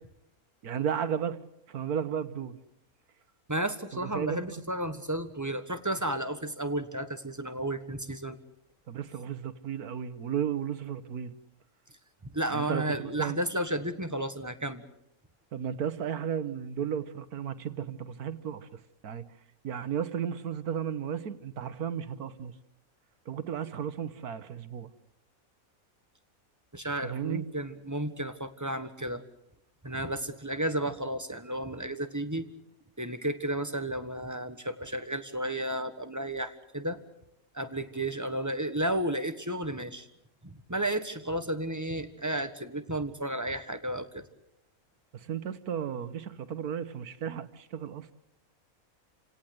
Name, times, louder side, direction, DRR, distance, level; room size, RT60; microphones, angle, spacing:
voice 1, 0.6-1.4 1.7-2.6 3.9-4.4 8.9-11.3 12.5-13.4 15.5-18.7 19.0-19.2 19.6-22.5 23.3-24.9 27.0-27.4 45.1-48.1, right 8 dB, 90° right, 13 dB, 1.7 m, -34 dB
voice 2, 3.5-8.4 12.2-14.9 26.7-29.2 29.8-32.5 33.0-37.0 37.5-40.1 40.4-44.2, right 1 dB, 10° right, 8 dB, 1.4 m, -33 dB
29.5 x 17.5 x 8.0 m, 0.80 s
omnidirectional pair, 1.5 m